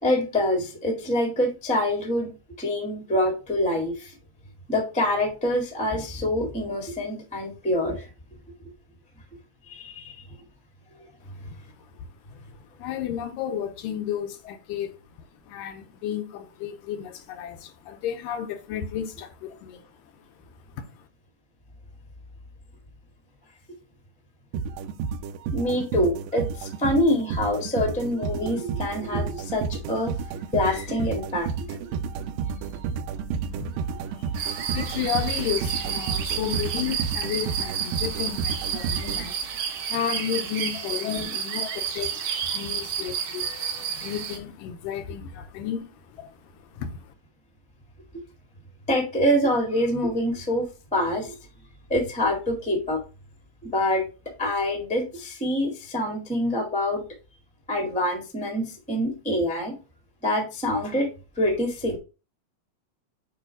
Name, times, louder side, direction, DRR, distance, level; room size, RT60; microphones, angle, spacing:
voice 1, 0.0-2.3 2.6-4.1 4.7-8.1 9.7-10.2 25.5-30.1 30.5-32.0 34.4-34.8 41.0-41.2 48.9-50.6 50.9-51.4 51.9-53.0 53.6-54.0 54.4-57.0 57.7-59.7 60.2-61.1 61.3-62.0, left 1 dB, 5° left, 0.8 m, -25 dB
voice 2, 12.5-15.0 15.4-19.9 20.2-20.3 20.7-21.1 33.6-47.1, left 9 dB, 80° left, 2.3 m, -33 dB
sound 1, 24.5-39.8, right 6 dB, 90° right, 2.3 m, -31 dB
sound 2, 34.3-44.4, right 7 dB, 65° right, 1.7 m, -31 dB
8.6 x 3.1 x 4.6 m
omnidirectional pair, 4.0 m